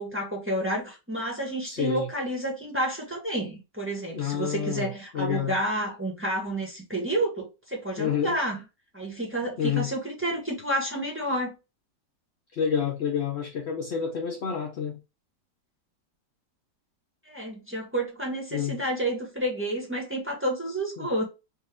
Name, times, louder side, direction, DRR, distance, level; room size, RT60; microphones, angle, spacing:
voice 1, 0.0-8.6 8.9-11.5 17.3-21.2, right 1 dB, 10° right, 1.2 m, -30 dB
voice 2, 1.6-2.1 4.1-5.6 8.0-8.4 9.6-9.9 12.5-15.0 18.5-18.8 21.0-21.1, left 8 dB, 70° left, 0.6 m, -29 dB
4.5 x 2.5 x 3.5 m
omnidirectional pair, 1.9 m